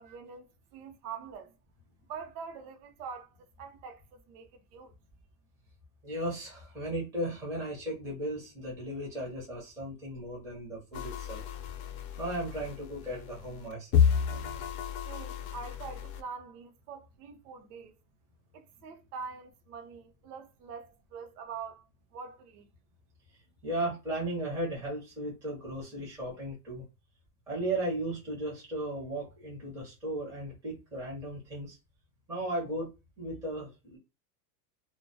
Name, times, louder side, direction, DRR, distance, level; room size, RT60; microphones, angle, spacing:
voice 1, 0.0-1.6 2.1-4.9 15.0-18.0 18.5-21.9 22.1-22.7, right 6 dB, 65° right, 0.7 m, -44 dB
voice 2, 6.0-11.4 12.2-14.0 14.3-14.7 23.6-26.8 27.5-31.8 32.3-32.9 33.2-34.0, right 1 dB, 5° right, 0.4 m, -36 dB
sound 1, 10.9-16.2, left 8 dB, 60° left, 0.5 m, -31 dB
2.2 x 2.2 x 2.5 m
supercardioid pair, 160°, 50 cm